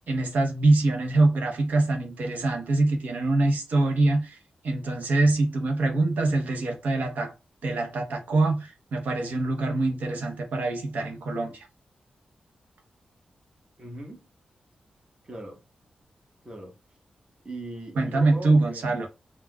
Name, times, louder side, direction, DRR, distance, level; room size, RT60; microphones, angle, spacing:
voice 1, 0.1-4.4 4.6-7.3 7.6-11.7 18.0-19.1, right 2 dB, 80° right, 0.8 m, -24 dB
voice 2, 13.8-14.3 15.2-15.6 16.4-16.7 17.4-19.1, right 1 dB, 35° right, 1.1 m, -40 dB
3.5 x 2.3 x 2.2 m
cardioid pair, 60°, 3 cm